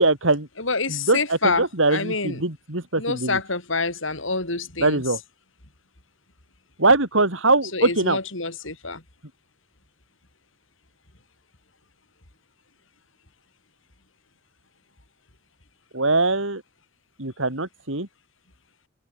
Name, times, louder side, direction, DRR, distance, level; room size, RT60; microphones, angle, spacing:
voice 1, 0.0-0.5 1.1-1.2 1.6-3.4 4.8-5.2 6.8-8.2 15.9-16.6 17.2-18.1, right 2 dB, 70° right, 3.7 m, -21 dB
voice 2, 0.6-2.4 3.0-5.0 7.7-9.0, left 3 dB, 70° left, 5.4 m, -27 dB
head